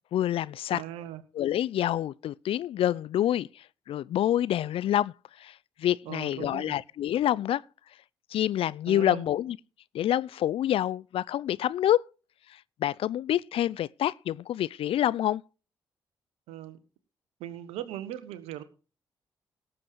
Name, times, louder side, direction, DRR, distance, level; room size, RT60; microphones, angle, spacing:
voice 1, 0.1-0.8 1.3-5.1 5.4-5.5 5.8-7.6 8.3-9.6 9.9-12.1 12.8-15.4, left 12 dB, 65° left, 0.5 m, -27 dB
voice 2, 0.7-1.2 6.0-6.8 8.9-9.3 16.5-16.8 17.4-18.6, right 12 dB, 80° right, 1.5 m, -39 dB
18.0 x 7.8 x 4.6 m
hypercardioid pair, 40°, 10 cm